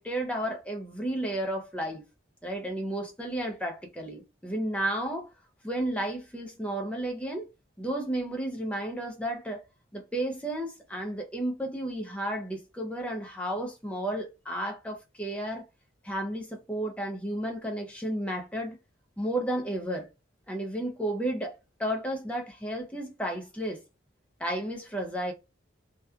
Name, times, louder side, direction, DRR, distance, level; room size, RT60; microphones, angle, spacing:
voice 1, 0.0-2.0 2.4-5.3 5.6-7.5 7.8-9.6 9.9-15.7 16.0-18.8 19.2-20.1 20.5-21.5 21.8-23.8 24.4-25.3, right 1 dB, 5° left, 0.5 m, -32 dB
2.9 x 2.2 x 2.3 m
head